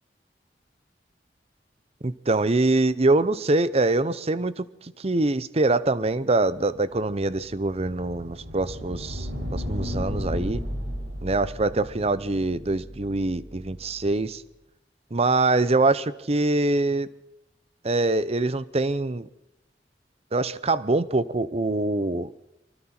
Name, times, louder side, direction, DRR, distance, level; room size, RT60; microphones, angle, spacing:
voice 1, 2.0-10.6 11.2-14.4 15.1-17.1 17.8-19.3 20.3-22.3, right 2 dB, 35° right, 0.7 m, -24 dB
sound 1, 7.3-13.8, equal, 85° right, 5.4 m, -34 dB
24.5 x 24.0 x 4.4 m
head